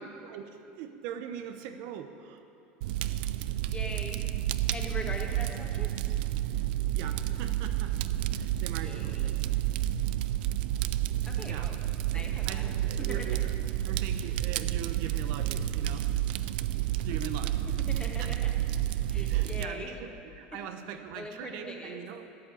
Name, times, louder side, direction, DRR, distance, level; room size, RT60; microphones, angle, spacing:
voice 1, 0.2-2.5 6.9-8.0 8.3-9.4 11.2-11.8 12.1-13.5 13.8-16.1 17.0-17.5 18.2-18.3 19.0-22.2, right 9 dB, 70° right, 7 dB, 0.9 m, -41 dB
Fire, 2.8-19.6, right 13 dB, 85° right, 0.4 m, -30 dB
voice 2, 3.5-4.3 4.7-6.0 8.6-9.3 11.2-11.8 12.1-13.3 17.0-17.5 17.8-18.5 19.1-20.0 20.5-20.6 21.1-22.0, left 2 dB, 20° left, 1 dB, 1.9 m, -42 dB
12.5 x 7.3 x 9.2 m, 2.7 s
supercardioid pair, 120°, 5 cm